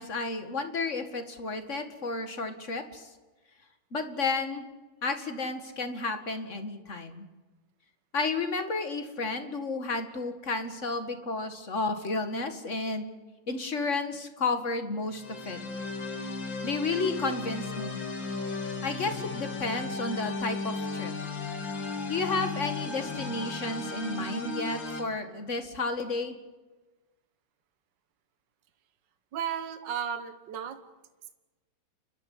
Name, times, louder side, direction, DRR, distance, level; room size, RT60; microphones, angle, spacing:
voice 1, 0.0-3.1 3.9-4.6 5.0-7.2 8.1-13.1 13.5-15.6 16.6-18.0 18.8-21.1 22.1-26.4, left 3 dB, 35° left, 8 dB, 2.1 m, -32 dB
sound 1, 15.1-25.0, left 3 dB, 65° left, 3.4 m, -35 dB
voice 2, 29.3-30.8, right 8 dB, 60° right, 9 dB, 1.9 m, -34 dB
29.5 x 12.5 x 9.7 m, 1.2 s
omnidirectional pair, 2.2 m